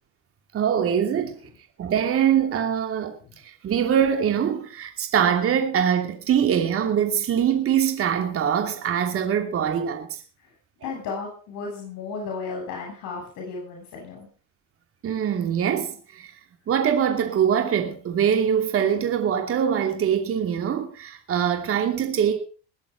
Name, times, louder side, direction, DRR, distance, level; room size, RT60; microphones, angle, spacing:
voice 1, 0.5-1.3 1.8-3.1 3.4-10.2 15.0-16.3 16.7-22.4, right 8 dB, 40° right, 2.8 m, -23 dB
voice 2, 10.8-14.3, left 4 dB, 60° left, 6.9 m, -34 dB
21.0 x 8.3 x 5.2 m
supercardioid pair, 105°, 34 cm